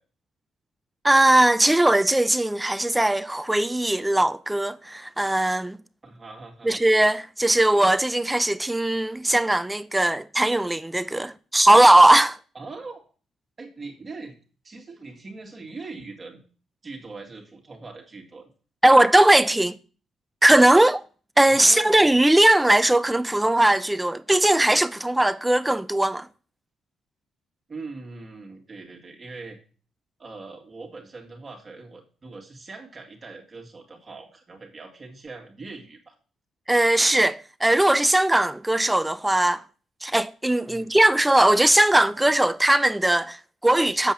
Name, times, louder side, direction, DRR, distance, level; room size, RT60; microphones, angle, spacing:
voice 1, 1.0-5.8 6.6-12.4 18.8-19.8 20.4-21.0 21.4-26.3 36.7-39.6 40.0-44.1, right 1 dB, 10° right, 0.6 m, -19 dB
voice 2, 6.0-6.8 12.5-13.0 13.6-14.3 14.6-16.4 16.8-18.5 21.5-22.0 27.7-29.6 30.2-36.1 40.6-40.9, right 3 dB, 35° right, 2.0 m, -41 dB
7.4 x 5.3 x 7.2 m
cardioid pair, 90°, 0 cm